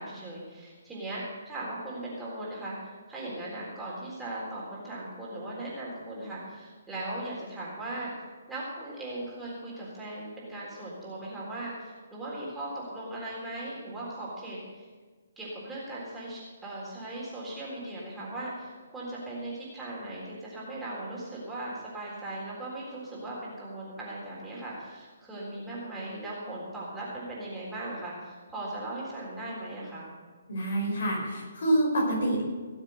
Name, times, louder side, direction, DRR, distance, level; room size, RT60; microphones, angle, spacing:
voice 1, 0.0-8.1 8.5-14.8 15.4-30.1, right 1 dB, 10° right, -7 dB, 3.8 m, -38 dB
voice 2, 30.5-32.4, right 1 dB, 55° left, -1 dB, 5.2 m, -27 dB
18.0 x 7.3 x 6.6 m, 1.4 s
figure-of-eight pair, 135°, 0 cm